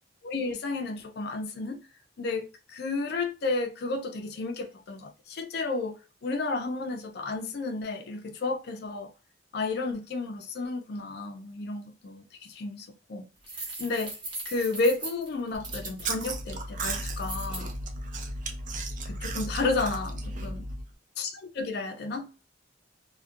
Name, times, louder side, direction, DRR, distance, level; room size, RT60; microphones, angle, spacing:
voice 1, 0.2-1.8 2.2-9.1 9.5-13.3 13.8-14.2 14.5-17.7 19.0-20.6 21.2-22.3, left 3 dB, 55° left, 0.4 m, -32 dB
sound 1, 13.4-16.3 17.1-17.6, right 2 dB, 25° right, 0.9 m, -38 dB
Chewing mastication, 15.5-20.9, right 2 dB, 40° right, 0.4 m, -35 dB
2.4 x 2.1 x 2.5 m
head